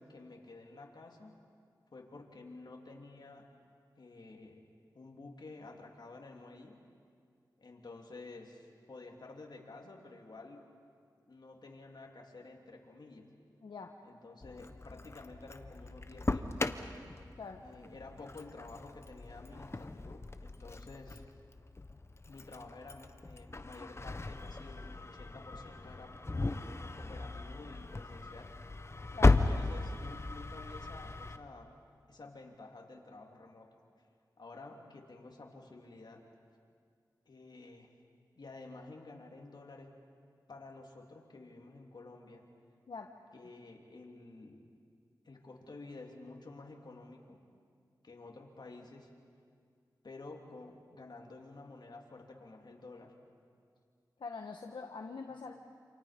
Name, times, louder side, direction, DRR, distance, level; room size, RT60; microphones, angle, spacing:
voice 1, 0.0-1.4 1.9-3.5 4.0-4.6 4.9-6.8 7.6-10.6 11.3-13.3 14.0-16.7 17.6-21.2 22.3-26.2 26.5-28.5 29.3-31.7 32.1-33.7 34.4-36.3 37.2-37.9 38.4-40.0 40.5-42.4 43.3-44.6 45.2-47.4 48.0-49.1 50.0-53.1, left 3 dB, 65° left, 1 dB, 3.2 m, -51 dB
voice 2, 13.6-13.9 17.4-17.6 29.1-29.4 42.9-43.1 54.2-55.5, left 4 dB, 80° left, 3 dB, 1.3 m, -44 dB
Engine starting, 14.4-31.4, left 3 dB, 35° left, 1.1 m, -36 dB
28.0 x 28.0 x 5.3 m, 2.2 s
wide cardioid pair, 60°, 8 cm